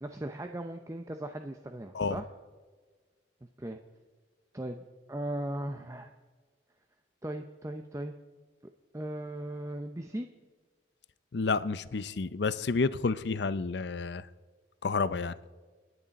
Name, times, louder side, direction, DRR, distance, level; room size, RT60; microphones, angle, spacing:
voice 1, 0.0-2.2 3.6-3.8 4.5-6.1 7.2-8.1 8.9-10.3, right 1 dB, 15° right, 6 dB, 0.6 m, -38 dB
voice 2, 11.3-14.2 14.8-15.3, left 4 dB, 65° left, 16 dB, 0.6 m, -30 dB
30.0 x 10.0 x 4.1 m, 1.5 s
head